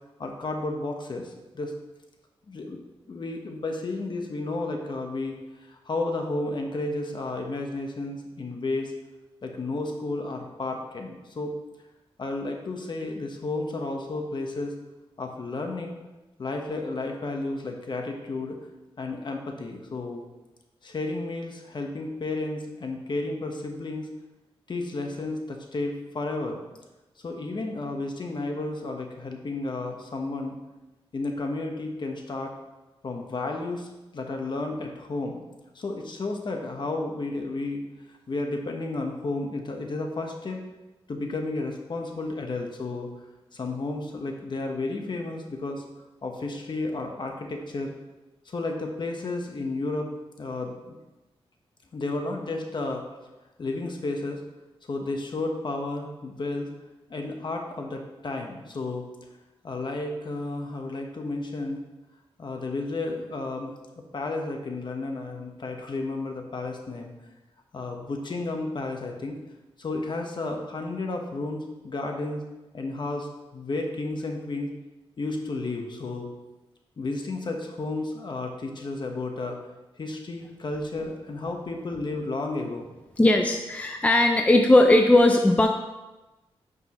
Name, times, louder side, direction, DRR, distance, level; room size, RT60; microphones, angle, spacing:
voice 1, 0.2-1.7 2.5-5.4 5.7-8.9 9.4-11.5 12.2-14.7 15.2-16.0 16.4-18.6 19.0-20.2 20.8-24.1 24.7-26.6 27.2-30.6 31.1-32.5 33.0-35.4 35.7-37.8 38.3-40.6 41.1-43.1 43.5-45.8 46.2-47.9 48.5-50.1 50.4-51.0 51.9-53.1 53.6-54.4 54.9-56.7 57.1-59.0 59.6-61.8 62.4-67.1 67.7-69.4 69.8-72.4 72.7-74.7 75.2-76.3 77.0-79.6 80.0-82.9, left 2 dB, 50° left, 3 dB, 1.1 m, -32 dB
voice 2, 83.2-85.7, left 1 dB, 15° left, 4 dB, 0.5 m, -18 dB
9.5 x 5.5 x 3.0 m, 1.1 s
wide cardioid pair, 100°, 10 cm